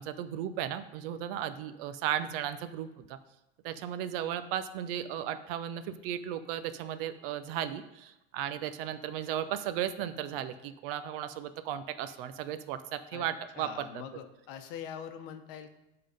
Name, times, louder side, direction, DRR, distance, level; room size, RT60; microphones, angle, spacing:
voice 1, 0.0-3.2 3.6-14.0, right 10 dB, 65° right, 11 dB, 0.7 m, -35 dB
voice 2, 13.6-15.7, left 8 dB, 65° left, 8 dB, 0.9 m, -43 dB
9.7 x 3.8 x 5.2 m, 0.93 s
supercardioid pair, 135°, 30 cm